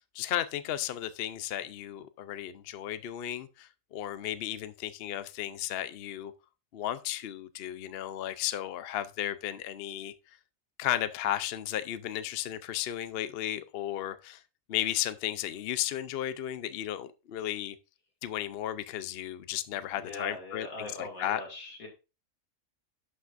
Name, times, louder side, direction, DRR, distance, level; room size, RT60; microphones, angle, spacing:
voice 1, 0.1-6.3 6.7-10.1 10.8-14.4 14.7-17.8 18.2-21.4, left 12 dB, 60° left, 0.7 m, -34 dB
voice 2, 20.0-21.9, left 2 dB, 85° left, 2.7 m, -41 dB
11.5 x 5.9 x 2.5 m
omnidirectional pair, 1.4 m